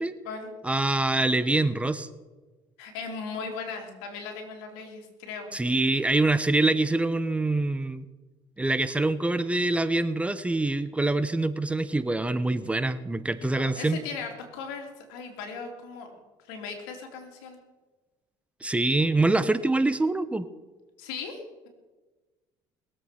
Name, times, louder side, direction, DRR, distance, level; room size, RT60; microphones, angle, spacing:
voice 1, 0.6-2.1 5.5-8.1 8.6-14.0 18.6-20.5, right 2 dB, 10° right, 13 dB, 0.9 m, -25 dB
voice 2, 2.8-5.5 13.6-17.6 21.0-21.7, left 5 dB, 85° left, 3 dB, 3.0 m, -38 dB
21.5 x 7.9 x 5.9 m, 1.2 s
supercardioid pair, 85°, 11 cm